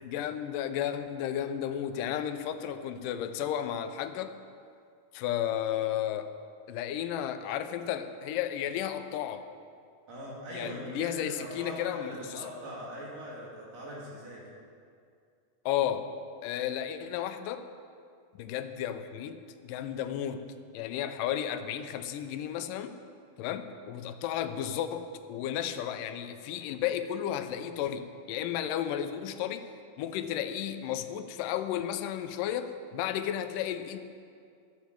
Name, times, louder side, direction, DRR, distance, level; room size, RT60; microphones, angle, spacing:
voice 1, 0.1-4.4 5.1-6.3 6.7-9.5 10.5-12.4 15.7-16.1 16.4-17.7 18.4-20.5 20.7-23.0 23.4-29.7 30.0-34.0, left 10 dB, 85° left, 10 dB, 2.3 m, -33 dB
voice 2, 10.1-14.4, equal, 75° right, -5 dB, 4.5 m, -41 dB
14.0 x 12.0 x 4.6 m, 2.3 s
omnidirectional pair, 3.8 m